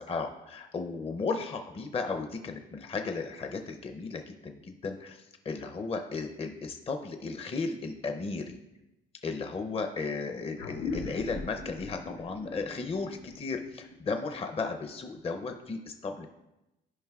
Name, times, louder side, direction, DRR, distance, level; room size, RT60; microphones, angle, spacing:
voice 1, 0.0-8.6 9.2-16.3, left 4 dB, 30° left, 5 dB, 0.6 m, -35 dB
sound 1, 10.6-15.5, left 4 dB, 85° left, 0.8 m, -41 dB
12.5 x 5.2 x 2.3 m, 0.95 s
cardioid pair, 90°, 20 cm